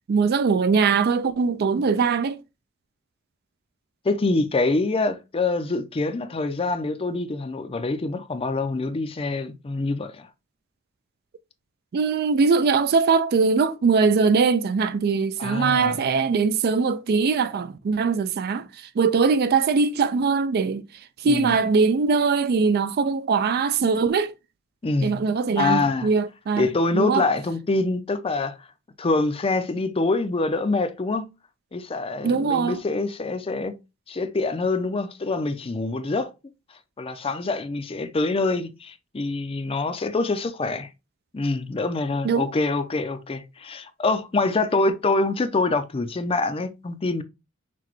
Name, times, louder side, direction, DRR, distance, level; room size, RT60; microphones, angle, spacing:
voice 1, 0.1-2.4 11.9-20.8 21.2-24.3 25.0-27.3 32.2-32.8 42.2-42.5, right 5 dB, 50° right, 0.3 m, -21 dB
voice 2, 4.0-10.3 15.4-16.0 21.2-21.6 24.8-25.1 25.6-26.1 26.6-28.6 29.0-31.3 31.7-33.8 34.1-36.3 37.0-40.9 41.3-47.2, left 3 dB, 25° left, 0.4 m, -25 dB
5.8 x 2.2 x 3.0 m
head